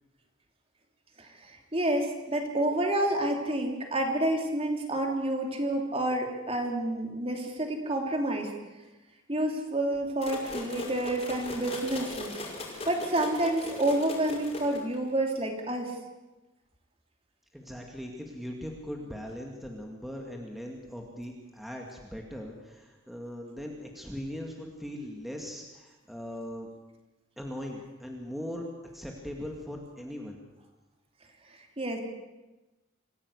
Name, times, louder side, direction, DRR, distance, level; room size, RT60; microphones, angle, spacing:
voice 1, 1.2-8.5 9.3-12.3 12.8-15.9 31.5-32.0, right 1 dB, 30° right, 2 dB, 3.1 m, -29 dB
sound 1, 10.2-15.1, left 2 dB, 30° left, 5.4 m, -39 dB
voice 2, 17.5-26.7 27.4-28.6 28.9-30.4, equal, ahead, 0 dB, 2.2 m, -40 dB
26.5 x 16.0 x 8.2 m, 1.1 s
head